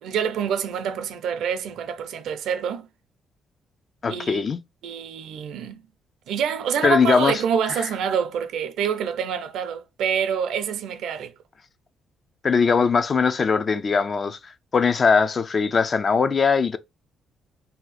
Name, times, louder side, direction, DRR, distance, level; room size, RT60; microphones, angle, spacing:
voice 1, 0.0-2.9 4.1-4.4 4.8-5.8 6.3-11.3, right 7 dB, 80° right, 0.5 m, -26 dB
voice 2, 4.0-4.6 6.8-7.4 12.4-14.4 14.7-16.8, left 5 dB, 40° left, 0.4 m, -20 dB
2.7 x 2.1 x 4.0 m
cardioid pair, 90°, 0 cm